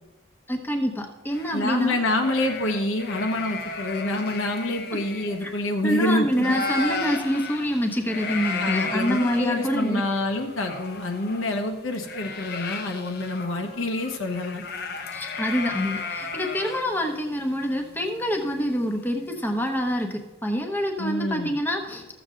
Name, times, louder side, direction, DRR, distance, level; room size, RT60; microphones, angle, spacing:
voice 1, 0.5-2.0 5.4-5.5 5.8-10.0 15.1-22.1, equal, 10° left, 3 dB, 1.0 m, -26 dB
sound 1, 1.3-6.0 6.3-19.2, left 4 dB, 50° left, 0.8 m, -35 dB
voice 2, 1.5-6.6 8.6-14.6 21.0-21.5, left 2 dB, 80° left, 3 dB, 1.2 m, -27 dB
14.0 x 7.1 x 3.8 m, 1.1 s
head